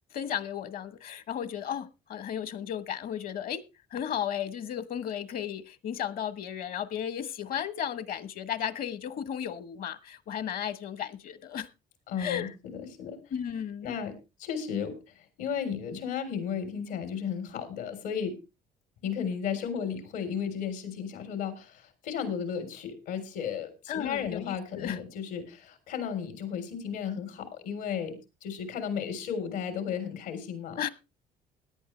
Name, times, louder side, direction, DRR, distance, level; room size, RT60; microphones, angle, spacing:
voice 1, 0.1-3.6 3.9-11.7 12.2-12.5 13.3-13.9 23.9-25.0 30.8-30.9, left 9 dB, 60° left, 1.1 m, -34 dB
voice 2, 12.1-13.2 13.8-18.4 19.0-30.8, left 7 dB, 90° left, 3.8 m, -34 dB
17.0 x 11.0 x 3.2 m
cardioid pair, 110°, 17 cm